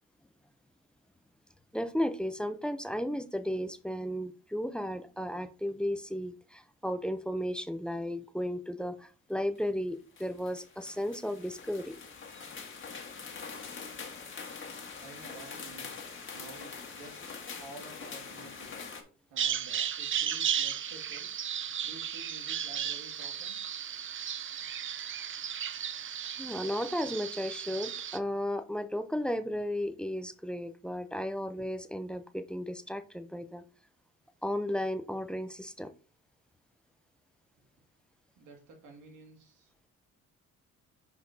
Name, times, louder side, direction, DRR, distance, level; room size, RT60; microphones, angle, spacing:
voice 1, 1.7-12.0 26.4-33.6 34.4-35.9, equal, 5° left, 11 dB, 0.6 m, -34 dB
sound 1, 9.6-9.7 10.2-19.0, left 5 dB, 40° left, 1.7 m, -44 dB
voice 2, 15.0-15.9 16.3-17.2 17.6-18.8 19.3-21.3 21.8-23.6 38.3-39.7, right 3 dB, 90° right, 2 dB, 2.2 m, -51 dB
Bird vocalization bird call bird song, 19.4-28.2, right 9 dB, 40° right, 0.6 m, -35 dB
8.0 x 5.0 x 2.7 m, 0.37 s
cardioid pair, 90°, 30 cm